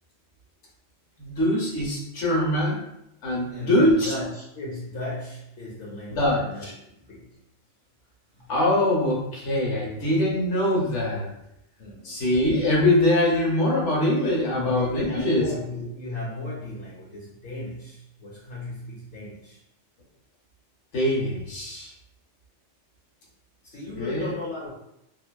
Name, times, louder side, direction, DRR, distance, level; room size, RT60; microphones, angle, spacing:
voice 1, 1.2-2.8 3.2-4.1 6.1-6.4 8.5-11.3 12.0-15.4 20.9-21.9 23.9-24.3, left 1 dB, 90° left, -4 dB, 1.2 m, -23 dB
voice 2, 3.5-7.4 8.3-8.5 11.8-12.2 14.5-19.6 23.6-24.7, left 2 dB, 60° left, -6 dB, 0.8 m, -36 dB
2.7 x 2.2 x 2.3 m, 0.81 s
omnidirectional pair, 1.2 m